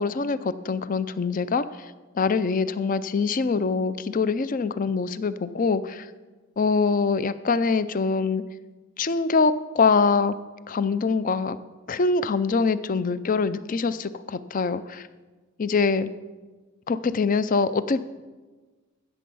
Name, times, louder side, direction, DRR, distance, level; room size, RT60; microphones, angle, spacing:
voice 1, 0.0-6.1 6.6-8.4 9.0-10.4 10.7-11.6 11.9-15.1 15.6-16.1 16.9-18.0, left 4 dB, 40° left, 14 dB, 0.4 m, -24 dB
16.0 x 6.9 x 5.5 m, 1.3 s
head